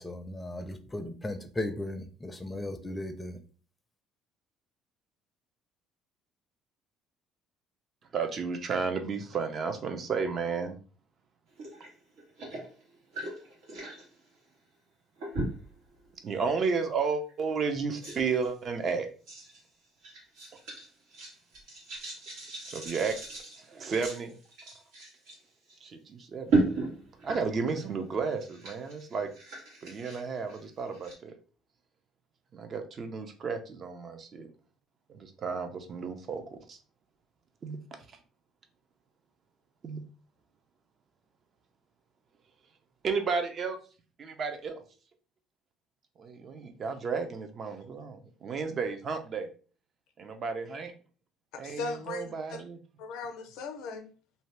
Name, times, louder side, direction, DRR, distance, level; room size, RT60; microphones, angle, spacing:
voice 1, 0.0-3.4, left 1 dB, 15° left, 7 dB, 0.5 m, -36 dB
voice 2, 8.1-10.8 16.2-19.1 22.7-23.1 23.7-24.4 25.8-26.6 27.2-29.3 29.8-31.3 32.5-34.5 35.1-36.8 37.6-37.8 39.8-40.0 43.0-43.8 44.2-44.8 46.2-49.5 50.2-50.9 51.6-52.8, right 5 dB, 45° right, 6 dB, 0.6 m, -32 dB
sound 1, 11.6-11.9 12.2-14.0 15.2-15.8 16.3-16.5 17.3-17.4 18.0-18.5 19.3-19.6 20.0-25.3 25.7-25.8 26.5-27.9 28.2-31.1, right 3 dB, 85° right, 1.4 m, -35 dB
voice 3, 51.6-52.6 53.0-54.1, left 4 dB, 80° left, 6 dB, 0.5 m, -38 dB
2.7 x 2.2 x 3.2 m, 0.39 s
supercardioid pair, 90°, 0 cm